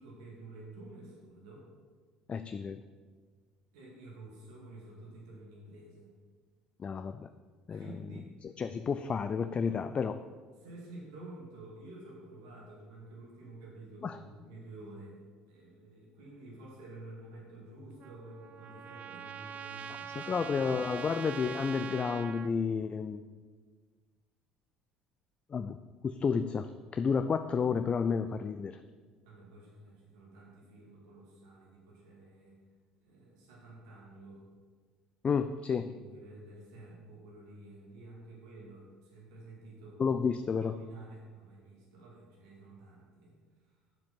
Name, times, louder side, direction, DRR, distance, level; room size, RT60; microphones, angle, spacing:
voice 1, 0.0-1.7 3.7-6.1 7.7-8.4 10.5-20.4 29.2-32.6 33.0-34.4 35.7-40.0 40.5-43.4 43.6-43.8, right 2 dB, 75° right, -4 dB, 2.5 m, -50 dB
voice 2, 2.3-2.8 6.8-7.3 7.7-7.9 8.4-10.2 14.0-14.2 20.3-23.2 25.5-25.8 26.0-28.8 35.2-35.9 40.0-40.8, left 6 dB, 35° left, 10 dB, 0.4 m, -31 dB
Trumpet, 18.0-22.5, right 8 dB, 50° right, 0.4 m, -43 dB
7.6 x 7.2 x 6.0 m, 1.5 s
hypercardioid pair, 60°, 3 cm